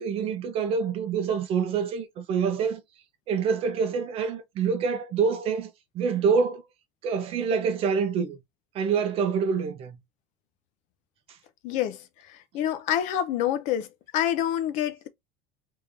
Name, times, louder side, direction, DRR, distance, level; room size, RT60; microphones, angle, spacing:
voice 1, 0.0-2.8 3.3-6.6 7.0-8.4 8.7-10.0, right 6 dB, 35° right, 0.8 m, -26 dB
voice 2, 11.6-12.0 12.5-13.9 14.1-15.1, left 10 dB, 45° left, 0.6 m, -26 dB
3.5 x 3.3 x 2.7 m
cardioid pair, 170°, 17 cm